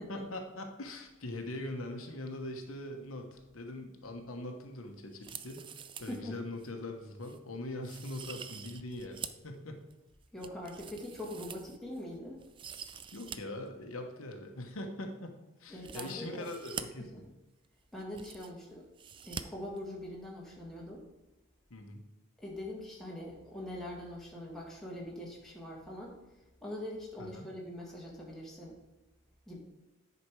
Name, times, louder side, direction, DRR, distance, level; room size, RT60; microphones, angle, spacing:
voice 1, 0.1-5.6 6.0-9.9 13.1-15.3 15.6-17.2 21.7-22.0 27.2-27.5, left 1 dB, 75° left, 4 dB, 1.1 m, -42 dB
sound 1, 5.1-6.2 6.6-6.7 7.2-7.4 7.8-9.5 9.9-12.0 12.4-13.4 13.7-13.8 15.7-16.8 17.6-17.7 17.9-18.6 19.0-19.4 19.7-19.8, right 7 dB, 25° right, 0.3 m, -45 dB
voice 2, 6.1-6.4 10.3-12.4 15.7-16.5 17.1-17.3 17.9-18.9 19.2-21.1 22.4-26.2 26.6-28.7 29.5-29.6, left 1 dB, ahead, -4 dB, 1.9 m, -43 dB
9.9 x 5.2 x 4.7 m, 1.0 s
head